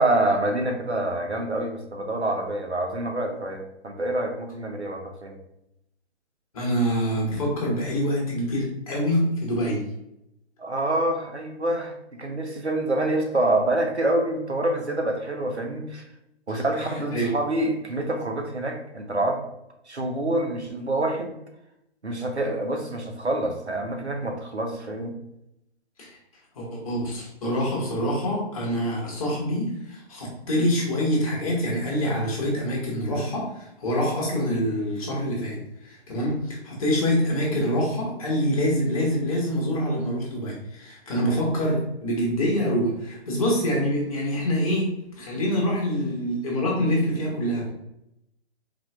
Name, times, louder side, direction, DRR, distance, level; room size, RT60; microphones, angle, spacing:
voice 1, 0.0-5.4 10.6-16.0 16.5-19.4 19.9-21.4 22.0-25.1, right 1 dB, 85° right, 3 dB, 0.9 m, -26 dB
voice 2, 6.5-9.8 16.5-16.6 17.1-17.3 26.0-26.2 26.5-47.7, equal, 35° left, -3 dB, 1.3 m, -25 dB
4.0 x 2.9 x 3.3 m, 0.82 s
figure-of-eight pair, 135°, 33 cm